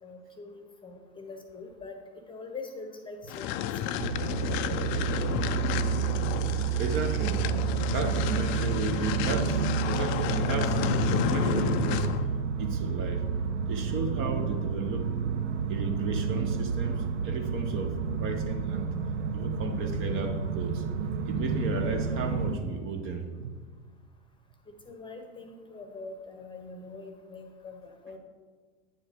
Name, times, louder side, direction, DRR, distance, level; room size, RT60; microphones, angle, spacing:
voice 1, 0.0-2.0 2.3-3.5 3.8-4.0 24.7-28.2, left 3 dB, 15° left, 4 dB, 1.0 m, -43 dB
sound 1, 3.3-12.3, left 10 dB, 35° left, 0.5 m, -31 dB
sound 2, 4.0-22.6, right 6 dB, 80° right, 0.7 m, -30 dB
voice 2, 6.8-7.5 7.9-12.2 12.6-13.3 13.7-15.1 15.7-19.0 19.3-20.8 21.3-23.5, right 3 dB, 35° right, 5 dB, 1.0 m, -34 dB
9.0 x 7.3 x 3.5 m, 1.5 s
hypercardioid pair, 100°, 36 cm